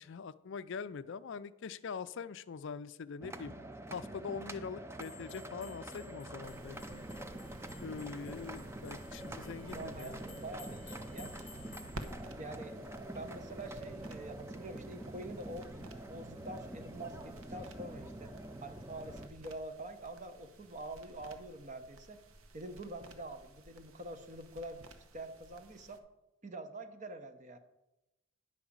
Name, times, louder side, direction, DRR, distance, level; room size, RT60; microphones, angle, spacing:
voice 1, 0.0-3.5 3.9-7.0 7.8-10.2, left 5 dB, 55° left, 14 dB, 0.4 m, -43 dB
sound 1, 3.2-19.3, right 1 dB, 10° right, 0.4 m, -46 dB
sound 2, 5.0-12.2, left 4 dB, 10° left, 1.0 m, -57 dB
sound 3, 6.4-26.0, right 1 dB, 70° right, 0.9 m, -54 dB
voice 2, 9.7-11.4 12.4-12.8 13.1-18.3 18.6-22.2 22.5-24.8 25.1-26.0 26.4-27.6, right 2 dB, 35° right, 9 dB, 0.8 m, -46 dB
9.8 x 5.0 x 7.2 m, 0.96 s
head